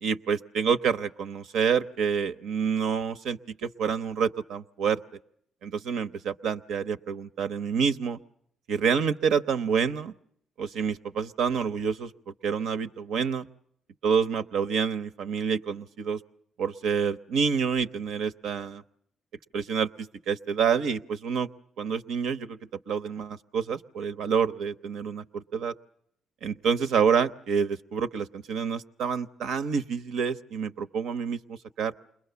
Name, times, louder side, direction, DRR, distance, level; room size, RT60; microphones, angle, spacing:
voice 1, 0.0-5.0 5.6-8.2 8.7-10.1 10.6-12.1 12.4-13.5 14.0-16.2 16.6-18.8 19.5-21.5 21.8-22.6 22.9-25.7 26.4-31.9, right 6 dB, 80° right, 12 dB, 0.9 m, -28 dB
28.5 x 22.0 x 6.9 m, 0.69 s
cardioid pair, 90°, 0 cm